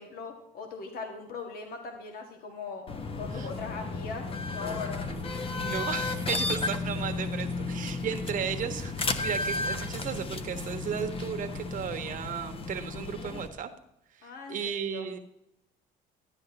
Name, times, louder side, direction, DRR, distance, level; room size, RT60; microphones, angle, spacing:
voice 1, 0.0-2.9 3.2-5.0 14.2-15.1, left 4 dB, 60° left, 3 dB, 1.7 m, -40 dB
sound 1, 2.9-13.5, left 3 dB, 35° left, 0.9 m, -33 dB
voice 2, 5.0-13.7 14.1-15.2, right 8 dB, 50° right, 6 dB, 1.2 m, -35 dB
12.5 x 9.6 x 2.9 m, 0.81 s
cardioid pair, 110°, 17 cm